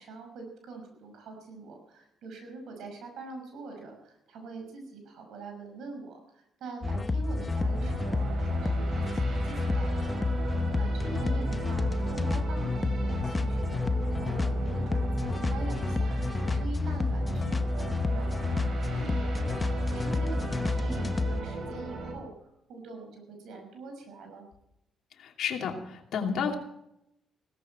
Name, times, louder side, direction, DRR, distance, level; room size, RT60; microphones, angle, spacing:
voice 1, 0.0-10.5 10.8-16.2 16.5-19.4 19.6-24.5, right 3 dB, 80° right, 4 dB, 5.9 m, -44 dB
sound 1, 6.8-21.4, left 2 dB, 25° left, 0.9 m, -29 dB
sound 2, 7.6-22.1, right 3 dB, 60° right, 4.7 m, -37 dB
voice 2, 25.2-26.5, left 6 dB, 75° left, 2 dB, 2.7 m, -31 dB
17.0 x 14.5 x 4.4 m, 0.81 s
cardioid pair, 90°, 0 cm